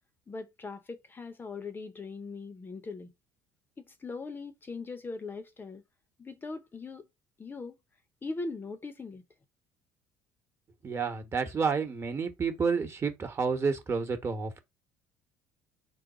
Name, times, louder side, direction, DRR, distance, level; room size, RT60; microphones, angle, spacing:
voice 1, 0.3-3.1 3.8-5.8 6.2-7.1 7.4-7.8 8.2-9.2, left 3 dB, 25° left, 0.7 m, -40 dB
voice 2, 10.8-14.6, right 5 dB, 30° right, 1.1 m, -30 dB
3.9 x 2.2 x 3.9 m
hypercardioid pair, 70°, 8 cm